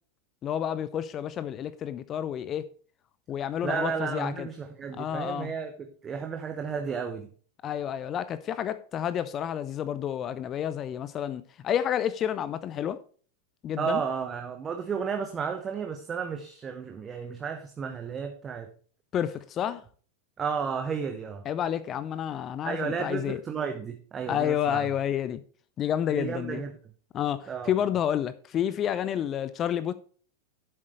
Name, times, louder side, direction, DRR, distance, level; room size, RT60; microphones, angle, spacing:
voice 1, 0.4-2.7 3.3-4.5 5.0-5.5 7.6-13.0 13.6-14.0 19.1-19.8 21.5-23.4 24.3-25.4 25.8-26.6 27.1-29.9, left 10 dB, 30° left, 0.6 m, -30 dB
voice 2, 3.6-5.7 6.0-7.3 13.8-18.7 20.4-21.4 22.6-24.8 26.1-26.7 27.5-27.7, right 6 dB, 20° right, 1.1 m, -32 dB
11.0 x 7.9 x 3.2 m
figure-of-eight pair, 90°, 0 cm